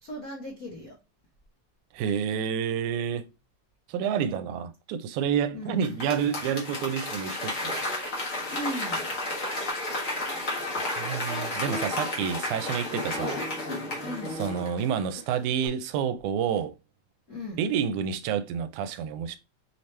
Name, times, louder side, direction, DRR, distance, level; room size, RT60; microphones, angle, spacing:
voice 1, 0.0-1.0 5.5-6.0 8.5-9.2 14.0-14.5 17.3-17.7, equal, 70° left, 0.8 m, -37 dB
voice 2, 1.9-3.3 3.9-8.1 11.0-13.4 14.4-16.8 17.6-19.4, right 8 dB, 85° right, 2.0 m, -29 dB
Applause / Crowd, 5.8-15.2 15.6-15.7, left 2 dB, 45° left, 1.0 m, -32 dB
5.5 x 2.9 x 3.2 m
omnidirectional pair, 3.4 m